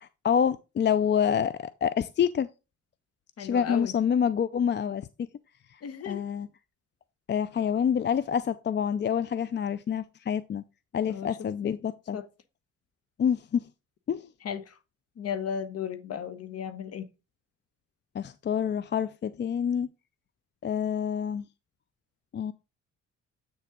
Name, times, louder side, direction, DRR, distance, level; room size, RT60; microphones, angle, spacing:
voice 1, 0.0-2.5 3.4-5.3 6.1-6.5 7.3-10.6 10.9-12.2 13.2-13.7 14.1-14.3 18.1-19.9 20.6-21.4 22.3-22.5, left 8 dB, 35° left, 0.4 m, -27 dB
voice 2, 3.4-3.9 5.8-6.2 11.1-11.3 11.6-11.7 12.1-12.3 14.4-14.7 15.2-17.1, left 7 dB, 55° left, 1.1 m, -35 dB
8.1 x 6.7 x 3.7 m
cardioid pair, 90°, 30 cm